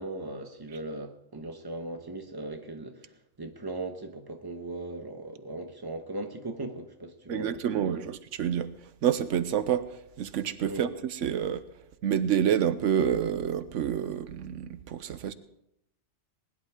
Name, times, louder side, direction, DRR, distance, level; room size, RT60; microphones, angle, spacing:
voice 1, 0.0-8.0 10.7-10.9, right 2 dB, 20° right, 1.3 m, -38 dB
voice 2, 7.3-8.7 9.0-11.7 12.0-15.3, right 9 dB, 85° right, 1.1 m, -28 dB
21.0 x 11.5 x 3.7 m
omnidirectional pair, 1.2 m